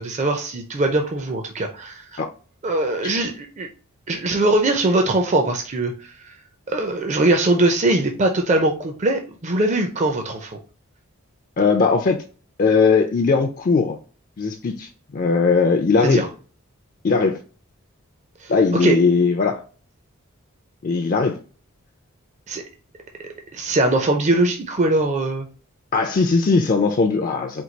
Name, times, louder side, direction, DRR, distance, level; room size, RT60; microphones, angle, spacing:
voice 1, 0.0-2.2 2.6-3.7 4.1-5.9 6.2-6.3 6.7-10.6 16.0-16.3 18.4-18.5 18.8-19.0 22.5-22.6 23.5-25.5, right 2 dB, 30° right, 0.5 m, -21 dB
voice 2, 11.6-12.2 12.6-14.0 14.4-16.2 17.0-17.4 18.5-19.6 20.8-21.4 25.9-27.6, left 4 dB, 40° left, 0.4 m, -19 dB
4.5 x 2.3 x 3.9 m
head